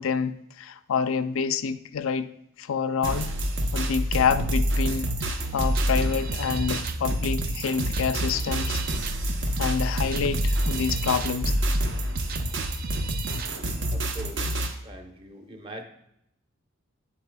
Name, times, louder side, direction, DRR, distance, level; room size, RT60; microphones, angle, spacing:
voice 1, 0.0-2.3 2.6-3.3 3.7-8.8 9.5-11.5, left 6 dB, 75° left, 11 dB, 0.4 m, -27 dB
sound 1, 3.0-14.7, right 1 dB, 65° right, 0.8 m, -27 dB
sound 2, 5.2-13.8, right 3 dB, 45° right, 0.4 m, -35 dB
voice 2, 13.9-15.8, right 1 dB, 25° right, 4 dB, 0.9 m, -42 dB
9.2 x 8.1 x 2.3 m, 0.76 s
head